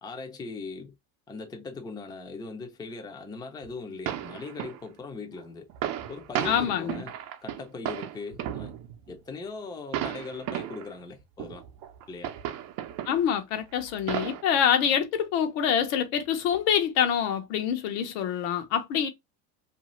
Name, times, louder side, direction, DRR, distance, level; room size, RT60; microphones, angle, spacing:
voice 1, 0.0-1.0 1.3-5.7 6.1-7.1 7.4-8.7 9.1-11.6 12.1-12.4, left 4 dB, 10° left, 0.5 m, -40 dB
sound 1, 3.6-3.7 4.1-4.9 5.4-5.5 5.7-9.2 9.9-10.9 11.4-13.4 13.8-14.4, right 11 dB, 50° right, 0.6 m, -34 dB
voice 2, 6.4-7.0 13.1-19.1, left 8 dB, 70° left, 0.9 m, -26 dB
2.7 x 2.4 x 2.9 m
supercardioid pair, 115°, 45 cm